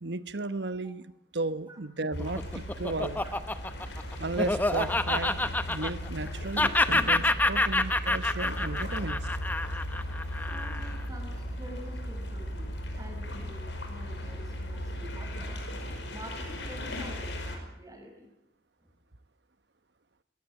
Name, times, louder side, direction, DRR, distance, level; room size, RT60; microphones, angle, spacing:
voice 1, 0.0-3.2 4.2-5.4 5.7-9.3, right 2 dB, 75° right, 13 dB, 1.1 m, -34 dB
Laughter, 2.0-6.3 6.5-11.0, left 2 dB, 10° left, 0.9 m, -28 dB
sound 1, 2.1-17.6, equal, 90° left, 5.4 m, -36 dB
voice 2, 10.4-15.6 16.1-18.3 18.8-18.9, right 1 dB, 20° right, 3 dB, 6.1 m, -47 dB
21.5 x 19.0 x 9.0 m, 0.81 s
head